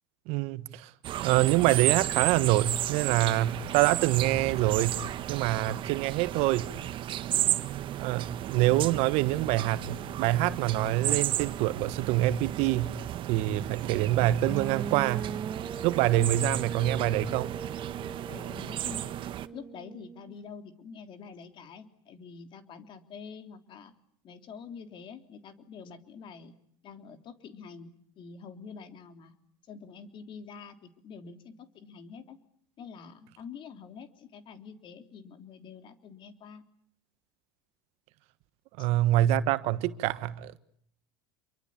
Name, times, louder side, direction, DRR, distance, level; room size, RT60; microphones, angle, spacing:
voice 1, 0.3-0.9 1.2-5.0 5.3-6.7 8.0-13.0 13.3-15.3 15.8-17.6 38.8-40.6, right 15 dB, 65° right, 1.4 m, -26 dB
sound 1, 1.0-19.5, right 12 dB, 45° right, 1.4 m, -33 dB
sound 2, 14.5-20.4, right 5 dB, 30° right, 1.7 m, -40 dB
voice 2, 18.3-19.1 19.5-23.9 24.2-26.5 26.8-29.4 29.7-32.4 32.8-36.6 38.8-38.9, left 6 dB, 45° left, 3.4 m, -46 dB
27.5 x 23.5 x 8.6 m
hypercardioid pair, 95°, 12 cm